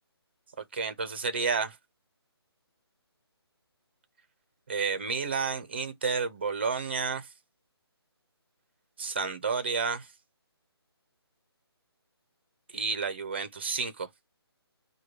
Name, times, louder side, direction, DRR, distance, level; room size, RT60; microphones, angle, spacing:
voice 1, 0.7-1.8 4.7-7.3 9.0-10.1 12.7-14.1, right 5 dB, 25° right, 0.6 m, -30 dB
4.8 x 2.3 x 4.5 m
hypercardioid pair, 175°, 14 cm